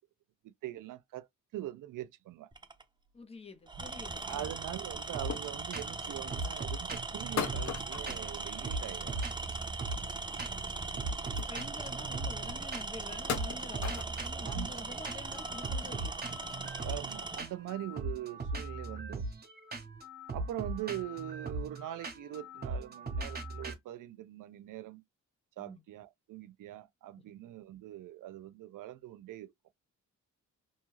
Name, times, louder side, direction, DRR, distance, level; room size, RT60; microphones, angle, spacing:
voice 1, 0.4-1.3 1.5-2.5 4.2-9.3 14.4-14.9 16.8-19.3 20.3-25.0 25.6-29.5, right 13 dB, 75° right, 0.5 m, -42 dB
Tools, 2.5-2.8 3.7-17.5, right 3 dB, 15° right, 0.4 m, -39 dB
voice 2, 3.1-4.5 10.2-11.0 11.3-16.2 25.6-25.8 27.2-27.3, left 3 dB, 20° left, 0.7 m, -48 dB
sound 1, 4.0-6.6 7.4-9.0 9.3-10.7 10.9-11.0 11.3-11.9 12.4-12.5 13.1-14.5 15.0-15.1 15.4-15.9 16.3-16.4 16.6-16.8 17.7-17.8, left 7 dB, 60° left, 0.7 m, -41 dB
sound 2, 5.1-5.5 5.7-6.0 6.3-8.4 8.6-10.1 10.4-10.7 11.0-13.0 13.3-23.7, right 2 dB, 30° right, 0.9 m, -39 dB
2.6 x 2.3 x 3.1 m
cardioid pair, 100°, 32 cm